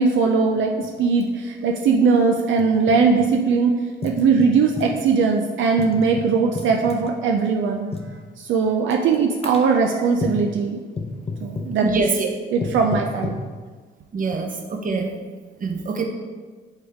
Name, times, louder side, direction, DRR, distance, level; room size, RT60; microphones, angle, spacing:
voice 1, 0.0-3.7 4.0-7.9 8.4-10.8 11.4-11.8 12.5-13.3, right 5 dB, 75° right, 2 dB, 0.5 m, -20 dB
sound 1, 0.8-0.9 1.2-1.3 2.2-3.3 4.0-5.0 5.8-7.1 7.9-8.1 8.9-9.1 9.4-9.8 10.2-10.5 11.0-11.8 12.6-13.5, left 3 dB, 30° left, 0.7 m, -31 dB
voice 2, 11.8-12.3 14.1-15.1 15.6-16.0, right 4 dB, 40° right, 3 dB, 0.9 m, -24 dB
8.1 x 3.6 x 3.5 m, 1.5 s
cardioid pair, 90°, 20 cm